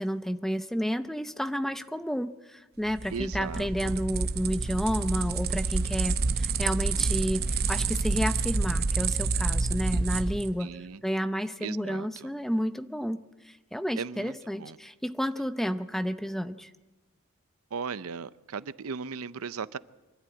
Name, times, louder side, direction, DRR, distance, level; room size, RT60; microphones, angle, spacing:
voice 1, 0.0-10.7 11.0-13.2 13.7-16.7, equal, ahead, 0.6 m, -31 dB
sound 1, 2.9-10.5, right 4 dB, 45° right, 0.7 m, -28 dB
voice 2, 3.1-4.0 10.2-10.3 10.6-11.0 11.6-12.3 14.0-14.8 17.7-19.8, right 5 dB, 85° right, 0.6 m, -37 dB
24.5 x 12.5 x 8.9 m
head